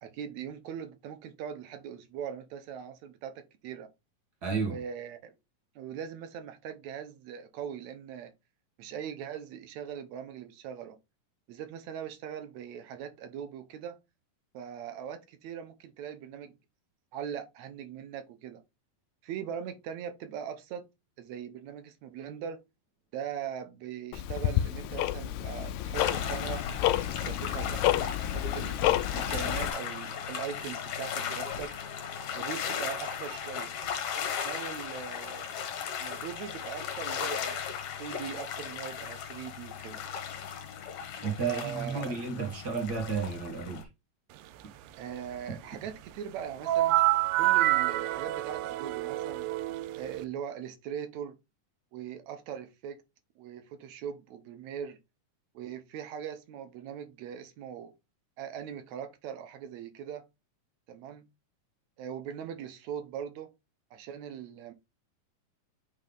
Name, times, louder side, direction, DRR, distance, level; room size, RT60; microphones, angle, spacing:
voice 1, 0.0-3.9 4.7-5.3 5.8-8.3 8.8-11.0 11.5-14.0 14.5-16.6 17.1-18.6 19.2-20.9 21.2-22.6 23.1-26.6 27.0-28.8 29.1-31.7 32.3-33.7 34.4-35.5 36.0-37.6 38.0-40.0 41.4-42.2 45.0-47.0 47.4-49.5 50.0-51.4 51.9-53.0 53.4-55.0 55.5-57.9 58.4-60.3 60.9-61.3 62.0-63.5 63.9-64.7, right 8 dB, 70° right, 1.9 m, -40 dB
voice 2, 4.4-4.8 41.2-43.9, right 5 dB, 45° right, 1.4 m, -32 dB
Tick-tock, 24.1-29.7, left 13 dB, 80° left, 1.9 m, -30 dB
sound 1, 25.9-43.8, left 7 dB, 65° left, 2.4 m, -36 dB
sound 2, 46.6-50.2, right 16 dB, 90° right, 2.2 m, -27 dB
5.4 x 5.4 x 3.8 m
omnidirectional pair, 3.7 m